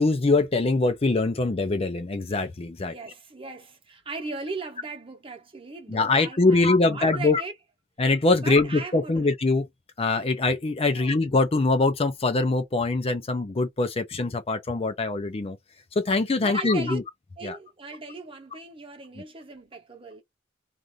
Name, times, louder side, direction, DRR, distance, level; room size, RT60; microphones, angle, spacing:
voice 1, 0.0-2.9 5.9-7.4 8.0-9.6 10.0-15.6 16.0-17.0 17.4-17.6, left 3 dB, 30° left, 0.5 m, -23 dB
voice 2, 2.8-7.5 8.4-9.3 10.9-11.2 16.4-17.0 17.4-20.2, right 3 dB, 30° right, 0.9 m, -38 dB
2.6 x 2.5 x 3.1 m
head